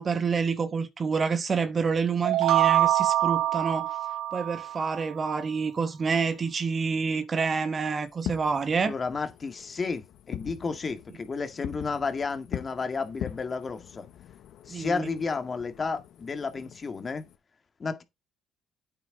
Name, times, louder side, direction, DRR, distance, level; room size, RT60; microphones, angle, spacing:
voice 1, 0.0-4.0 4.3-8.9 14.7-15.1, right 5 dB, 35° right, 1.2 m, -28 dB
sound 1, 2.2-5.0, right 13 dB, 70° right, 0.6 m, -24 dB
Fireworks, 8.1-17.4, left 11 dB, 70° left, 1.1 m, -42 dB
voice 2, 8.8-14.1 14.7-17.2 17.8-18.0, left 4 dB, 35° left, 1.9 m, -32 dB
8.9 x 8.3 x 3.8 m
cardioid pair, 95°, 0 cm